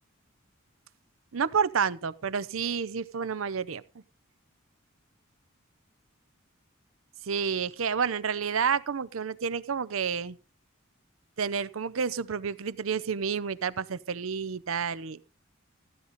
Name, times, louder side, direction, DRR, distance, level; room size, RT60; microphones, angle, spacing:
voice 1, 1.3-3.8 7.2-10.4 11.4-15.2, right 6 dB, 75° right, 0.6 m, -30 dB
14.0 x 9.5 x 4.1 m
head